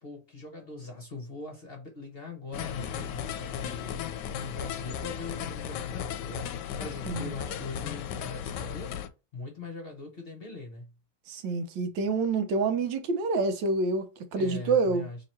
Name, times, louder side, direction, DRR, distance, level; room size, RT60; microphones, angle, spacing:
voice 1, 0.0-4.0 4.4-9.0 9.3-10.9 14.4-15.2, left 3 dB, 45° left, 0.9 m, -41 dB
sound 1, 2.5-9.1, left 9 dB, 75° left, 1.1 m, -35 dB
voice 2, 11.3-15.1, right 3 dB, 85° right, 1.5 m, -27 dB
3.4 x 2.9 x 4.2 m
omnidirectional pair, 1.9 m